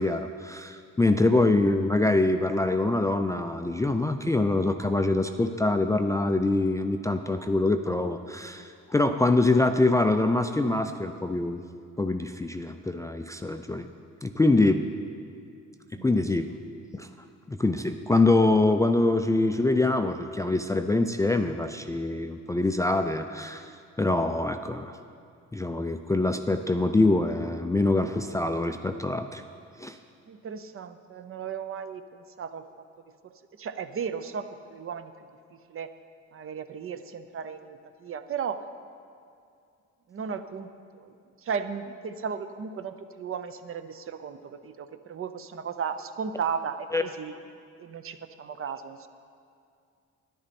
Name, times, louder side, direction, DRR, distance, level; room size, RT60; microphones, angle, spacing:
voice 1, 0.0-11.6 12.0-13.9 14.2-14.8 16.0-16.5 16.9-17.1 17.5-23.7 24.0-25.0 25.5-29.4 29.8-30.0 46.9-47.0, left 2 dB, 10° left, 7 dB, 0.3 m, -24 dB
voice 2, 1.1-1.4 15.9-16.1 30.3-32.6 33.2-35.1 35.7-35.9 36.3-38.6 40.1-40.7 41.0-41.1 41.4-47.4 47.8-49.1, right 6 dB, 45° right, 10 dB, 0.6 m, -35 dB
11.0 x 10.0 x 4.2 m, 2.4 s
cardioid pair, 90°, 30 cm